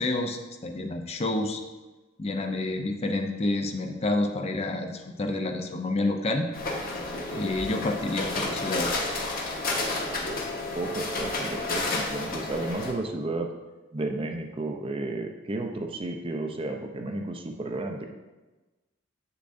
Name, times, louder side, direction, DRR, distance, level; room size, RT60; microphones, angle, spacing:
voice 1, 0.0-1.6 2.2-6.5 7.3-8.9, left 2 dB, 30° left, 4 dB, 0.5 m, -29 dB
sound 1, 6.5-12.9, left 2 dB, 50° left, 1.0 m, -31 dB
voice 2, 10.7-13.5 13.9-18.1, right 2 dB, 30° right, 3 dB, 0.5 m, -32 dB
7.5 x 6.8 x 2.6 m, 1.2 s
head